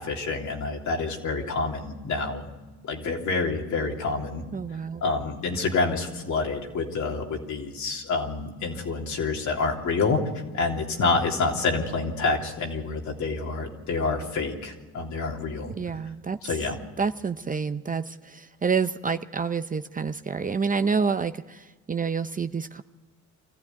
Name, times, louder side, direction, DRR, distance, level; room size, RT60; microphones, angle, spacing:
voice 1, 0.0-2.4 2.8-4.4 5.0-10.2 10.5-15.7 16.4-16.8, left 3 dB, 70° left, 0 dB, 3.3 m, -27 dB
voice 2, 4.5-5.0 15.8-16.5 17.0-22.8, right 5 dB, 25° right, 10 dB, 0.7 m, -28 dB
24.0 x 14.5 x 9.5 m, 1.2 s
cardioid pair, 90°, 30 cm